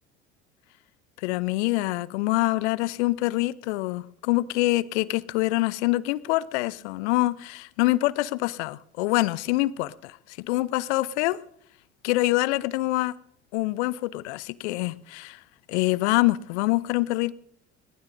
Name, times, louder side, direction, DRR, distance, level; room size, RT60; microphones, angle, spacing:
voice 1, 1.2-11.4 12.0-13.1 13.5-15.4 15.7-17.3, left 19 dB, 70° left, 0.6 m, -25 dB
20.0 x 18.5 x 2.6 m
hypercardioid pair, 65°, 35 cm